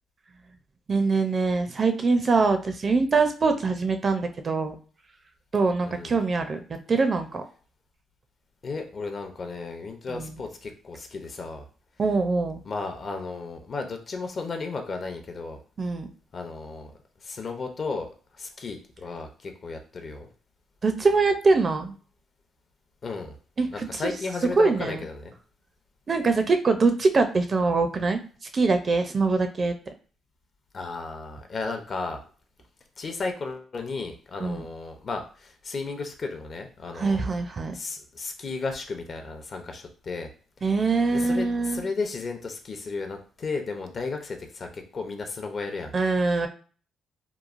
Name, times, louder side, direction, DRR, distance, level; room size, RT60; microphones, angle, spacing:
voice 1, 0.9-4.7 5.5-7.4 10.1-10.3 12.0-12.6 15.8-16.1 20.8-21.9 23.6-23.9 24.6-25.0 26.1-28.2 28.5-29.7 34.4-34.6 37.0-37.7 40.6-41.8 45.9-46.5, right 3 dB, 40° right, 7 dB, 0.4 m, -23 dB
voice 2, 5.8-6.2 8.6-11.7 12.6-15.6 16.3-16.9 17.2-18.1 18.4-20.3 23.0-23.4 23.7-25.3 30.7-32.2 33.0-37.3 37.7-40.3 41.1-45.9, left 4 dB, 45° left, 5 dB, 0.6 m, -34 dB
3.0 x 2.2 x 2.4 m, 0.40 s
cardioid pair, 90°, 0 cm